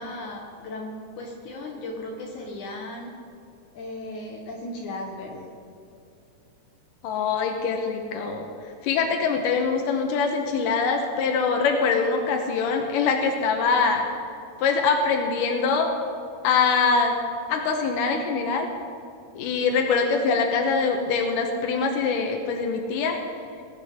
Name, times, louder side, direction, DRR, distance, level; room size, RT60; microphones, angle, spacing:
voice 1, 0.0-3.1 3.7-5.5, left 1 dB, 70° left, -1 dB, 2.6 m, -36 dB
voice 2, 7.0-8.5 8.8-14.1 14.6-15.9 16.4-17.1 17.5-18.7 19.4-23.2, left 5 dB, 90° left, 3 dB, 2.5 m, -23 dB
20.5 x 9.9 x 3.6 m, 2.5 s
omnidirectional pair, 3.7 m